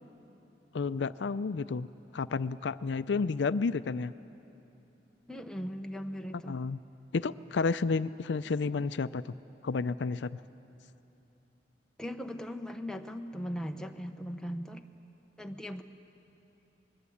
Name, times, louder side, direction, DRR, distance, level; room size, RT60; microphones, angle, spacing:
voice 1, 0.7-4.1 6.5-6.8 7.1-9.3 9.6-10.4, left 4 dB, 85° left, 15 dB, 0.5 m, -31 dB
voice 2, 5.3-6.6 12.0-14.8 15.4-15.8, equal, 5° left, 4 dB, 0.9 m, -38 dB
25.0 x 21.0 x 8.5 m, 3.0 s
head